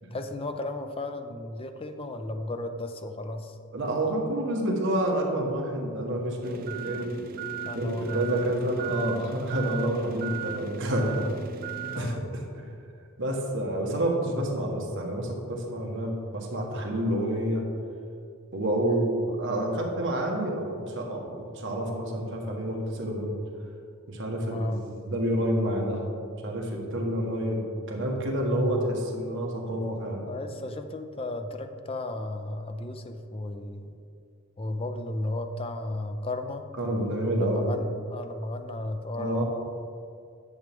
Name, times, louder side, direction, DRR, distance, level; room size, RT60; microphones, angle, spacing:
voice 1, 0.1-3.6 6.4-6.8 7.6-8.5 11.0-11.4 11.9-12.2 18.9-19.1 24.5-24.9 28.5-28.9 30.3-33.9 34.6-36.6 37.4-39.4, left 1 dB, 25° left, 7 dB, 0.5 m, -34 dB
voice 2, 3.7-7.2 7.7-11.3 12.0-12.7 13.2-17.6 18.5-23.3 24.1-26.0 26.4-30.3 36.8-37.7 39.2-39.4, right 1 dB, 60° right, 0 dB, 1.4 m, -29 dB
sound 1, 6.4-12.2, right 8 dB, 45° right, 0.3 m, -37 dB
10.5 x 7.1 x 3.6 m, 2.4 s
head